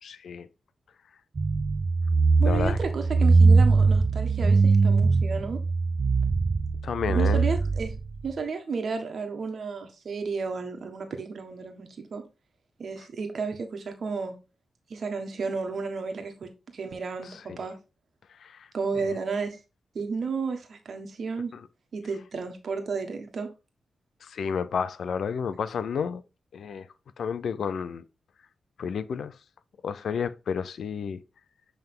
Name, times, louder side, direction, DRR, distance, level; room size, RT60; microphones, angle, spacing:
voice 1, 0.0-0.5 2.4-2.8 6.8-7.4 17.2-17.6 18.4-18.7 18.9-19.1 21.5-21.6 24.2-26.2 26.5-26.9 27.2-28.0 28.8-29.4 29.8-31.2, left 6 dB, 75° left, 0.5 m, -31 dB
sound 1, 1.4-8.3, right 4 dB, 50° right, 0.5 m, -21 dB
voice 2, 2.4-5.6 7.1-7.9 8.2-12.2 12.8-14.4 14.9-17.7 18.7-19.6 19.9-21.5 21.9-23.5, right 4 dB, 65° right, 1.4 m, -32 dB
7.8 x 3.5 x 3.6 m
cardioid pair, 55°, 0 cm